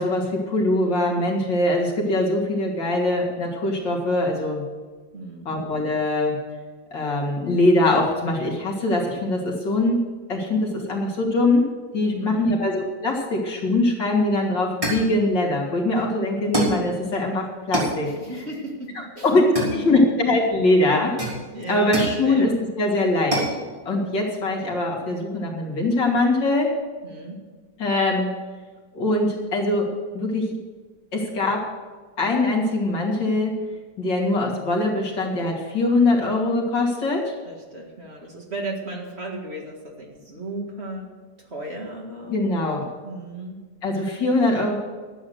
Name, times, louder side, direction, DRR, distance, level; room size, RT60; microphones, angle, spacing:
voice 1, 0.0-4.6 5.4-6.4 6.9-10.0 10.3-11.7 11.9-18.1 19.2-21.1 21.7-22.5 22.8-23.4 23.8-26.7 27.8-28.3 28.9-30.5 31.1-31.7 32.2-33.5 34.0-37.3 42.3-42.9 43.8-44.8, left 2 dB, 75° left, -2 dB, 3.3 m, -22 dB
voice 2, 5.1-5.6 12.1-12.7 18.1-19.9 21.5-22.6 27.0-27.4 37.4-41.1 41.4-42.4 43.0-43.6, right 2 dB, 35° right, 0 dB, 2.1 m, -35 dB
sound 1, 14.1-14.3 14.8-15.2 16.5-16.9 17.7-18.0 19.5-20.2 21.2-22.2 23.3-23.6, right 1 dB, 15° right, 3.5 m, -26 dB
12.5 x 8.6 x 8.0 m, 1.4 s
omnidirectional pair, 2.0 m